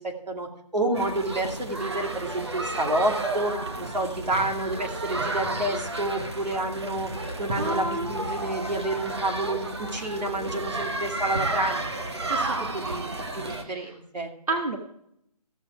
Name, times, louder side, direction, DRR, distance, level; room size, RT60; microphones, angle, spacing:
voice 1, 0.0-3.5 3.8-7.1 7.4-11.8 12.3-14.3, right 1 dB, 80° right, 3 dB, 2.6 m, -29 dB
sound 1, 0.9-13.6, right 2 dB, 40° right, 1.2 m, -32 dB
voice 2, 7.5-8.1 13.5-14.0 14.5-14.8, right 2 dB, 60° right, 3 dB, 1.4 m, -30 dB
15.0 x 7.3 x 4.7 m, 0.74 s
hypercardioid pair, 180°, 21 cm